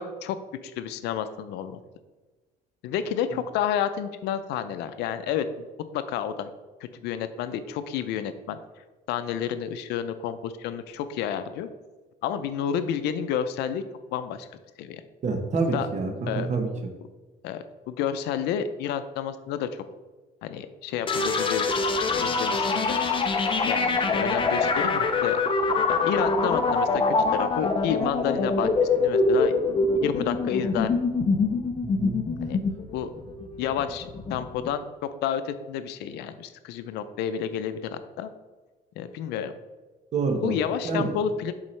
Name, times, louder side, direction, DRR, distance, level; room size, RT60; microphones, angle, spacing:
voice 1, 0.0-1.8 2.8-5.7 5.9-6.5 7.0-8.6 9.1-11.7 12.2-13.8 14.1-14.5 14.8-15.0 15.7-15.9 16.3-16.5 17.4-19.8 20.4-21.7 22.1-23.0 23.7-25.4 25.9-29.5 30.0-30.9 32.4-32.6 32.9-33.1 33.6-34.8 35.2-38.3 39.0-39.5 40.4-41.5, left 8 dB, 85° left, 11 dB, 0.5 m, -30 dB
voice 2, 15.2-16.7 31.8-32.2 40.1-40.6 40.8-41.1, right 4 dB, 45° right, 4 dB, 1.1 m, -27 dB
sound 1, 21.1-34.7, left 4 dB, 30° left, 0.7 m, -24 dB
7.1 x 4.6 x 3.2 m, 1.2 s
cardioid pair, 110°, 17 cm